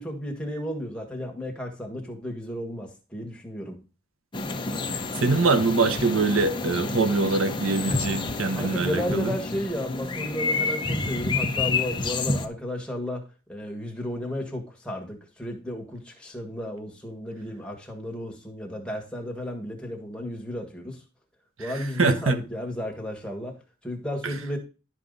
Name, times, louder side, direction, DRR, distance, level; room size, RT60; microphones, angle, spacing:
voice 1, 0.0-3.8 8.5-21.0 21.6-23.6 23.8-24.6, equal, 5° left, 1.7 m, -33 dB
sound 1, 4.3-12.5, left 3 dB, 25° left, 0.8 m, -29 dB
voice 2, 5.2-9.3 21.6-21.7 22.0-22.4 24.2-24.3, right 3 dB, 85° right, 1.0 m, -24 dB
12.0 x 4.9 x 3.9 m
head